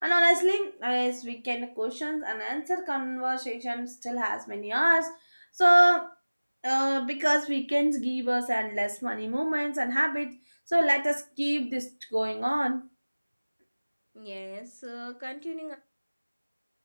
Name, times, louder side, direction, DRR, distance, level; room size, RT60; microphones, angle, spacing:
voice 1, 0.0-5.2 5.5-6.1 6.6-10.3 10.7-12.9, right 1 dB, 25° right, 0.6 m, -26 dB
voice 2, 14.1-15.8, equal, 75° right, 1.4 m, -39 dB
5.7 x 3.2 x 5.4 m
figure-of-eight pair, 180°, 0 cm